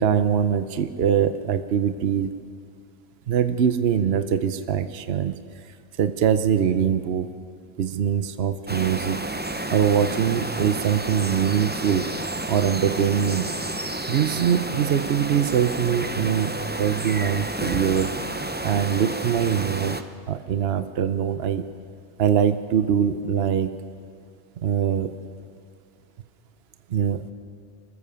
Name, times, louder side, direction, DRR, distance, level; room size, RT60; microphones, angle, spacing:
voice 1, 0.0-2.3 3.3-5.3 6.0-7.3 7.8-9.3 9.7-12.1 12.5-13.5 14.1-16.5 16.8-18.2 18.6-20.0 20.3-21.6 22.2-23.7 24.6-25.1 26.9-27.2, right 8 dB, 60° right, 10 dB, 1.0 m, -23 dB
sound 1, 8.7-20.0, right 2 dB, 15° right, 0.4 m, -30 dB
26.0 x 15.0 x 6.9 m, 2.2 s
omnidirectional pair, 1.2 m